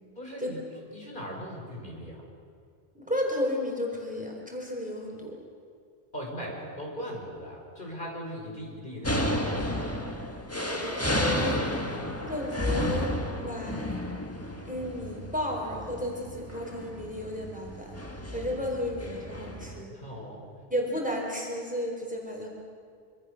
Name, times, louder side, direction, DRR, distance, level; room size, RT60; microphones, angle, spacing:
voice 1, 0.2-0.6 0.9-2.2 6.1-10.1 19.9-20.4, equal, 55° left, -1 dB, 5.5 m, -39 dB
voice 2, 2.9-5.3 10.6-11.9 12.2-13.9 14.6-20.0 20.7-22.5, left 1 dB, 10° right, 0 dB, 4.1 m, -33 dB
sound 1, 9.0-19.8, left 1 dB, 15° left, 1.6 m, -32 dB
26.0 x 25.0 x 6.6 m, 2.3 s
omnidirectional pair, 1.0 m